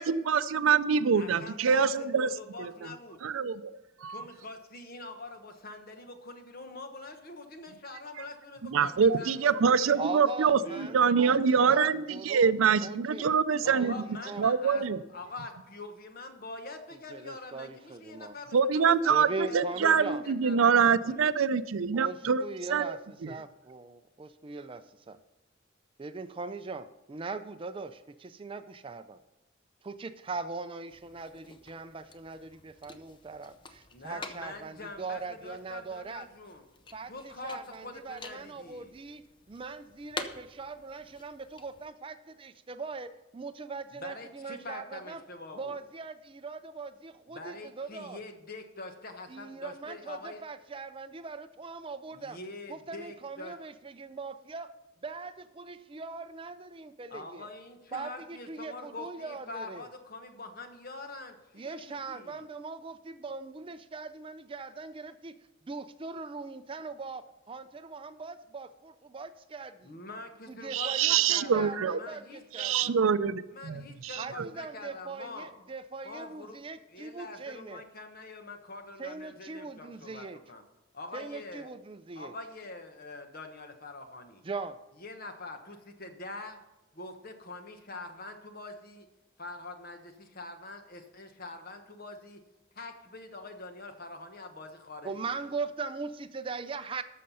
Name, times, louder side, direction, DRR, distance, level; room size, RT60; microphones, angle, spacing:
voice 1, 0.0-2.3 2.6-2.7 3.2-4.2 8.7-13.9 14.4-15.0 18.5-22.9 23.2-23.3 70.7-72.0 72.6-74.5, right 6 dB, 85° right, 15 dB, 0.5 m, -25 dB
voice 2, 1.1-3.2 4.1-10.0 10.6-11.0 13.6-20.8 21.0-21.3 33.9-36.6 37.1-38.9 43.9-45.8 47.3-50.4 52.1-53.5 57.1-62.4 69.8-72.9 73.5-75.5 76.0-76.6 76.9-80.6 80.9-81.7 82.1-84.4 85.0-86.6 86.9-89.1 89.4-92.4 92.7-95.1, left 2 dB, 45° left, 6 dB, 1.2 m, -44 dB
voice 3, 9.9-12.5 12.8-14.5 16.9-18.3 19.1-20.3 21.9-25.2 26.0-29.2 29.8-36.3 36.9-45.2 45.5-48.2 49.3-52.4 52.7-54.7 55.0-57.5 57.9-59.9 61.5-70.0 70.5-73.0 74.2-77.8 79.0-80.4 81.1-82.3 84.4-84.8 95.0-97.0, right 4 dB, 25° right, 11 dB, 0.4 m, -40 dB
sound 1, 30.9-41.9, left 3 dB, 25° left, 0.7 m, -48 dB
13.0 x 6.6 x 5.6 m, 0.99 s
head